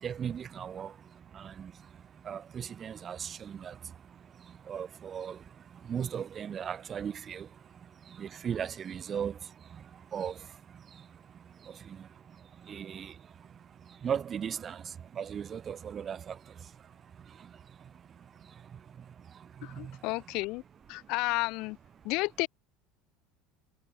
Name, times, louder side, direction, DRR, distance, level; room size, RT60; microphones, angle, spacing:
voice 1, 0.0-20.4 20.9-21.1 22.0-22.1, right 8 dB, 30° right, 0.9 m, -40 dB
voice 2, 19.6-20.6 20.9-21.8 22.0-22.5, left 24 dB, 60° left, 1.6 m, -32 dB
cardioid pair, 140°, 0 cm